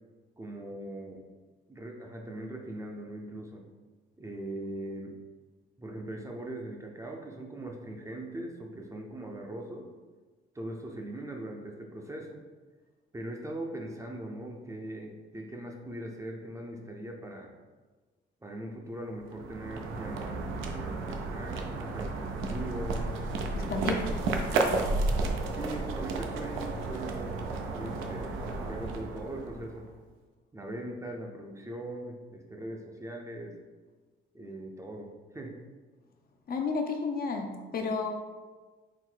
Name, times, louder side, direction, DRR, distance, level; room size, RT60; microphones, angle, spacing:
voice 1, 0.4-1.2 1.7-3.6 4.2-5.2 5.8-9.9 10.5-12.4 13.1-17.5 18.4-23.1 23.6-23.9 25.5-29.9 30.5-33.6 34.3-35.6, right 1 dB, 15° right, 1 dB, 0.5 m, -40 dB
sound 1, 19.2-29.9, right 3 dB, 85° right, 0.5 m, -32 dB
voice 2, 23.5-24.2 36.5-38.2, left 4 dB, 50° left, 3 dB, 0.6 m, -32 dB
3.9 x 2.1 x 4.5 m, 1.3 s
cardioid pair, 90°, 20 cm